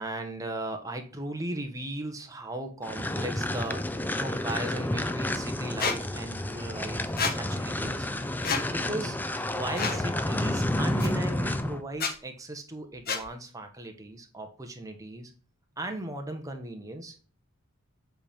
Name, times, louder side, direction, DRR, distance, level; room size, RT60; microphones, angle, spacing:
voice 1, 0.0-8.1 8.4-9.3 9.5-15.3 15.8-17.3, right 1 dB, 15° right, 5 dB, 1.2 m, -37 dB
sound 1, 2.8-11.8, left 1 dB, 10° left, 0.5 m, -30 dB
Squeak, 5.8-6.0 7.2-7.3 8.4-8.6 9.7-10.0 11.0-11.1 11.9-12.1 13.1-13.2, left 5 dB, 45° left, 1.2 m, -28 dB
7.9 x 4.3 x 3.5 m, 0.38 s
head